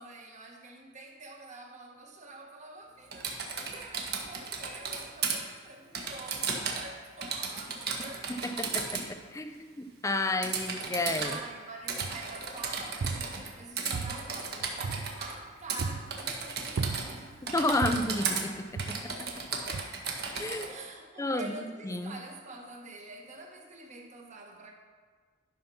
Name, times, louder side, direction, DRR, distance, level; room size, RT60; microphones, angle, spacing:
voice 1, 0.0-8.3 10.5-17.8 20.7-24.7, right 2 dB, 40° right, 1.5 m, -47 dB
Typing, 3.1-5.4 5.9-6.9 7.2-9.1 10.4-11.4 11.9-13.5 13.8-15.3 15.7-17.2 17.5-18.4 18.8-20.7, right 5 dB, 55° right, 1.4 m, -34 dB
voice 2, 8.3-11.4 17.5-19.4 20.3-20.7 21.2-22.1, left 2 dB, 15° left, 0.5 m, -32 dB
sound 1, 12.0-12.4 12.8-13.6 13.9-15.4 15.8-16.2 16.8-17.4 17.8-18.2 18.8-19.3 19.7-19.8, right 4 dB, 75° right, 0.4 m, -36 dB
11.5 x 5.7 x 5.7 m
head